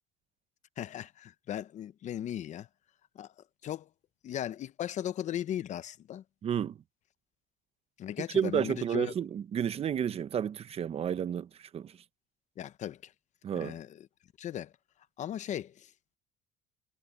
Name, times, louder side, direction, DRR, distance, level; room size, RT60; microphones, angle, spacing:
voice 1, 0.8-2.7 3.2-3.3 3.6-3.9 4.2-6.2 8.0-9.1 12.6-13.1 13.5-14.1 14.4-14.7 15.2-15.9, left 11 dB, 40° left, 0.7 m, -37 dB
voice 2, 6.4-6.8 8.3-11.9 13.4-13.8, right 8 dB, 30° right, 0.8 m, -31 dB
cardioid pair, 145°, 19 cm